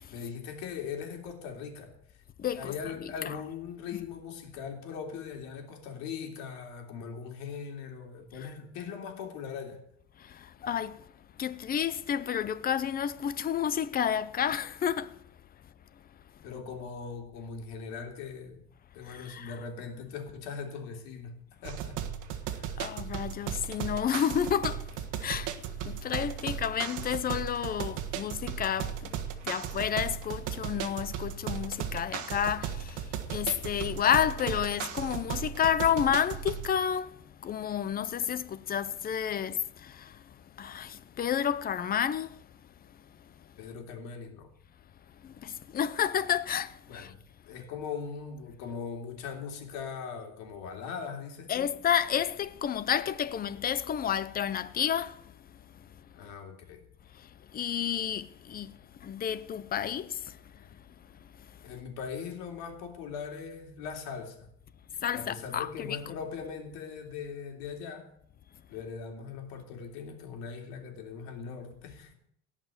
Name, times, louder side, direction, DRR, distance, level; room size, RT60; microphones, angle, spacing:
voice 1, 0.1-1.9 2.6-9.8 16.4-18.6 18.9-22.0 22.5-22.8 43.6-44.5 46.9-47.2 47.5-51.7 56.1-56.8 61.6-64.5 65.1-68.0 68.7-72.1, left 6 dB, 80° left, 3.4 m, -40 dB
voice 2, 2.4-2.7 3.2-3.4 10.2-11.0 11.4-15.2 19.1-19.6 22.8-24.9 25.2-25.5 25.8-29.1 29.4-40.2 40.6-42.4 45.2-47.1 51.5-55.2 57.5-60.4 65.0-66.0, left 9 dB, 25° left, 0.6 m, -30 dB
sound 1, 21.6-36.8, right 9 dB, 60° right, 1.6 m, -36 dB
17.5 x 5.9 x 9.0 m
cardioid pair, 145°, 34 cm